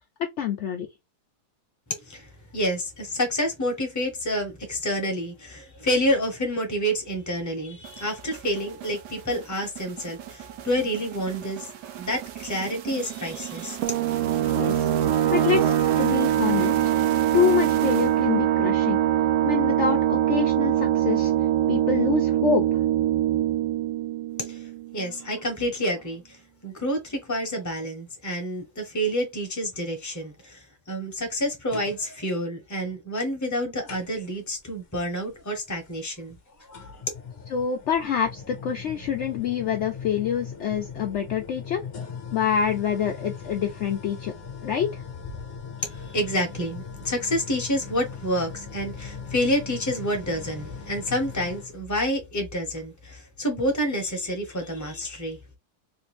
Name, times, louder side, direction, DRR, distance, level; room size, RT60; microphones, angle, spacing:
voice 1, 0.4-0.9 14.5-14.9 15.3-16.9 17.3-19.0 19.4-21.3 21.7-22.7 37.5-41.8 42.3-44.3 44.6-45.0, left 8 dB, 75° left, 0.6 m, -26 dB
voice 2, 1.9-11.7 12.0-14.0 24.4-36.4 36.7-37.1 45.8-55.4, equal, 15° left, 0.7 m, -28 dB
sound 1, 7.8-18.5, right 11 dB, 85° right, 1.2 m, -38 dB
sound 2, 13.8-25.1, right 12 dB, 65° right, 0.7 m, -23 dB
sound 3, 33.9-34.5 35.8-35.9 36.7-51.7, left 6 dB, 45° left, 0.9 m, -39 dB
3.4 x 2.5 x 3.0 m
omnidirectional pair, 1.8 m